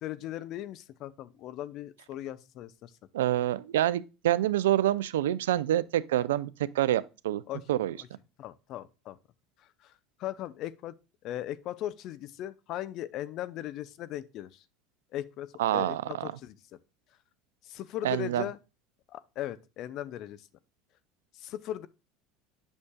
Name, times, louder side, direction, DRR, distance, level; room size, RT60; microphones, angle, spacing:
voice 1, 0.0-2.9 7.5-7.8 8.4-9.2 9.6-9.9 10.2-10.9 11.2-14.6 15.1-16.6 17.6-18.6 19.1-20.5 21.3-21.9, left 12 dB, 55° left, 0.6 m, -38 dB
voice 2, 3.1-7.4 7.7-7.9 15.6-16.3 18.0-18.5, right 13 dB, 85° right, 0.4 m, -27 dB
8.6 x 6.4 x 2.3 m
hypercardioid pair, 85°, 0 cm